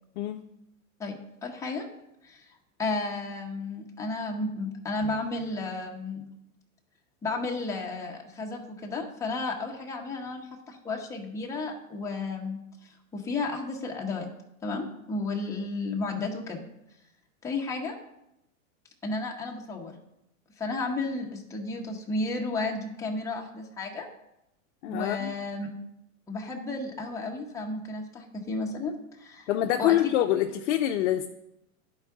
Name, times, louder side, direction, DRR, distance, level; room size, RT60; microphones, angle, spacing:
voice 1, 1.0-1.8 2.2-2.4 2.8-6.2 7.2-14.3 14.6-16.6 17.4-18.0 19.0-19.9 20.6-24.1 24.9-25.7 26.3-29.5 29.8-30.1, left 3 dB, 5° left, -1 dB, 0.8 m, -33 dB
voice 2, 24.8-25.3 29.5-31.3, left 12 dB, 55° left, 5 dB, 0.5 m, -25 dB
11.0 x 4.7 x 3.6 m, 0.85 s
supercardioid pair, 145°, 43 cm